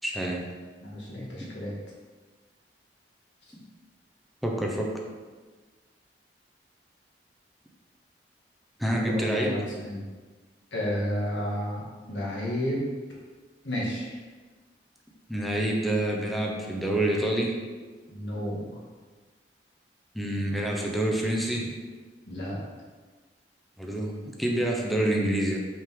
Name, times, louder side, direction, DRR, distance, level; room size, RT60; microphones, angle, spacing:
voice 1, 0.0-0.5 1.4-1.5 3.5-3.6 4.4-4.9 8.8-9.6 15.3-17.6 20.1-21.7 23.8-25.6, right 1 dB, ahead, -1 dB, 0.7 m, -27 dB
voice 2, 0.8-1.7 9.0-10.0 10.7-11.8 12.1-12.8 13.6-14.2 18.1-18.7 22.3-22.6, equal, 90° left, -5 dB, 2.0 m, -31 dB
5.6 x 5.2 x 3.7 m, 1.3 s
head